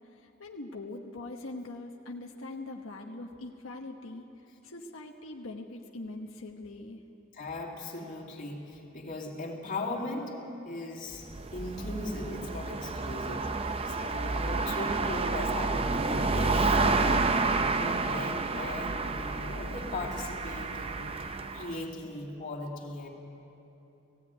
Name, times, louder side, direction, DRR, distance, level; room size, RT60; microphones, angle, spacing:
voice 1, 0.1-4.3 4.6-7.0, left 2 dB, 85° left, 1 dB, 1.2 m, -42 dB
voice 2, 7.3-10.4 10.6-11.3 11.5-17.4 17.8-21.1 21.5-23.1, left 2 dB, 40° left, -2 dB, 2.8 m, -38 dB
sound 1, 11.1-21.8, right 3 dB, 30° right, 0.6 m, -30 dB
17.5 x 16.5 x 9.4 m, 2.9 s
head